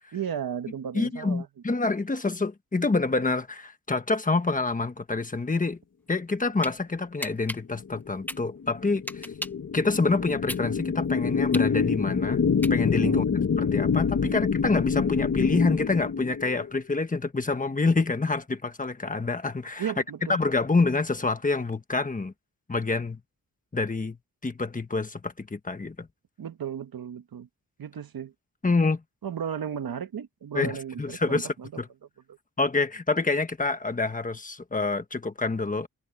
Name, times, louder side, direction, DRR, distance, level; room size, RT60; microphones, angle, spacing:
voice 1, 0.1-1.5 13.0-13.2 14.2-14.4 19.8-20.4 26.4-27.5 27.8-28.3 29.2-31.7 32.3-32.4, right 8 dB, 80° right, 1.3 m, -34 dB
voice 2, 0.9-5.8 6.1-9.3 9.7-12.4 12.7-13.2 13.6-19.9 20.3-22.3 22.7-23.2 23.7-24.2 24.4-26.1 28.6-29.0 30.5-31.9 32.6-35.9, left 3 dB, 20° left, 1.3 m, -27 dB
sound 1, 6.2-6.7 7.2-9.7 10.1-13.1, left 1 dB, 5° left, 0.7 m, -37 dB
sound 2, 7.9-16.7, left 5 dB, 45° left, 1.0 m, -26 dB
wide cardioid pair, 165°, 35 cm